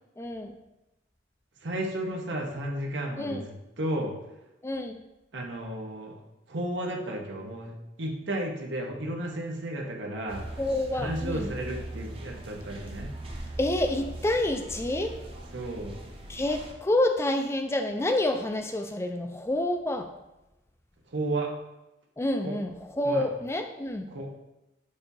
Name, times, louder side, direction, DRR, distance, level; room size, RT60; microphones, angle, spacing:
voice 1, 0.2-0.5 3.2-3.4 4.6-5.0 10.6-11.5 13.6-15.1 16.3-20.1 22.2-24.1, left 1 dB, 15° left, 5 dB, 0.3 m, -28 dB
voice 2, 1.6-4.1 5.3-6.2 6.5-10.6 11.0-13.1 15.5-16.0 21.1-21.5 22.4-22.6 23.0-23.2 24.1-24.4, right 1 dB, 75° right, 1 dB, 1.0 m, -33 dB
sound 1, 10.3-16.7, right 1 dB, 30° right, 0.7 m, -40 dB
6.9 x 2.7 x 5.4 m, 0.95 s
head